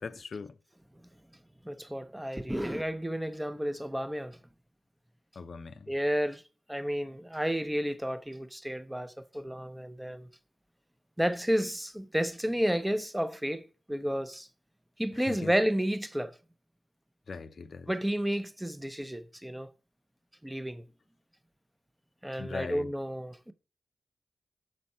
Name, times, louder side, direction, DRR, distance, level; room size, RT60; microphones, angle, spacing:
voice 1, 0.0-0.5 5.4-5.9 15.2-15.5 17.3-17.9 22.4-22.9, left 5 dB, 60° left, 0.5 m, -40 dB
voice 2, 1.6-4.4 5.9-6.4 6.7-10.3 11.2-14.5 15.0-16.4 17.9-19.7 20.4-20.8 22.2-23.5, equal, 10° right, 0.6 m, -31 dB
6.3 x 4.2 x 5.3 m
supercardioid pair, 45°, 0 cm